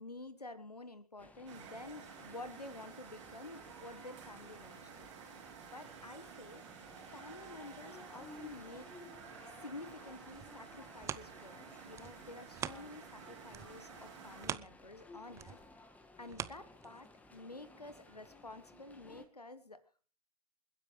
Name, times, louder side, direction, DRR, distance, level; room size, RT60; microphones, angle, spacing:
voice 1, 0.0-5.1 5.7-6.6 7.0-8.9 9.4-15.6 16.2-19.8, left 2 dB, 85° left, 14 dB, 1.4 m, -50 dB
sound 1, 1.2-19.3, left 2 dB, 5° left, 1.6 m, -58 dB
sound 2, 1.5-14.5, right 7 dB, 50° right, 5.2 m, -53 dB
sound 3, 10.3-13.2 13.5-17.3 17.8-17.9, right 9 dB, 15° right, 0.6 m, -45 dB
28.5 x 10.5 x 3.2 m, 0.38 s
figure-of-eight pair, 105°, 20 cm